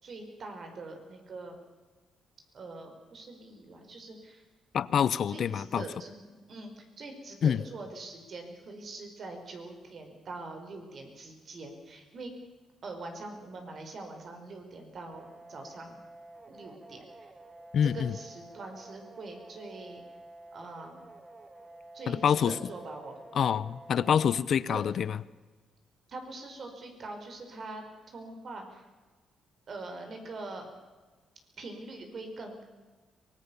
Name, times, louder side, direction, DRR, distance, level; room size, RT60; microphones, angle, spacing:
voice 1, 0.0-1.5 2.5-4.4 5.3-12.3 12.8-16.0 16.4-17.3 17.8-20.0 20.5-21.0 21.9-23.2 24.7-25.0 26.1-28.8 29.7-30.7 31.6-32.6, right 2 dB, 50° right, 5 dB, 5.0 m, -43 dB
voice 2, 4.7-5.8 7.4-7.6 17.7-18.2 22.1-22.5 23.3-25.2, left 8 dB, 55° left, 18 dB, 0.8 m, -26 dB
sound 1, 15.1-24.5, right 2 dB, 20° right, 1.9 m, -50 dB
23.5 x 20.0 x 7.1 m, 1.3 s
cardioid pair, 115°, 0 cm